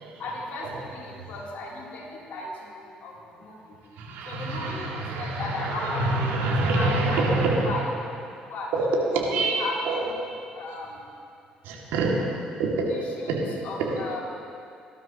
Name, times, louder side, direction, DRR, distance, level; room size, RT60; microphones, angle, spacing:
voice 1, 0.2-2.0 2.3-3.1 3.4-3.6 4.2-4.9 5.2-7.2 7.6-7.9 8.5-8.7 9.2-10.2 10.5-10.9 12.9-14.2, left 3 dB, 60° left, -4 dB, 3.3 m, -35 dB
voice 2, 4.0-7.7 8.7-8.8 9.1-10.0 11.6-12.1 12.6-12.9 13.3-13.4, right 3 dB, 70° right, -3 dB, 2.3 m, -26 dB
18.5 x 12.5 x 3.0 m, 2.5 s
hypercardioid pair, 50°, 4 cm